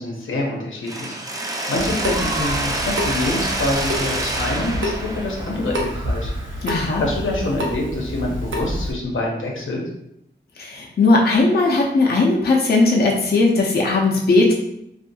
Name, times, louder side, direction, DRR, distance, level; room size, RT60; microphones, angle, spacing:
voice 1, 0.0-6.6 7.0-9.8, left 2 dB, 90° left, -2 dB, 0.7 m, -26 dB
Mechanisms, 0.9-6.7, right 1 dB, 20° right, 0.4 m, -27 dB
Water tap faucet / Sink (filling or washing) / Drip, 1.7-8.9, equal, 80° right, 0.6 m, -28 dB
voice 2, 6.6-7.0 10.6-14.5, left 3 dB, 55° left, -1 dB, 0.4 m, -17 dB
2.6 x 2.4 x 2.7 m, 0.77 s
wide cardioid pair, 80°, 20 cm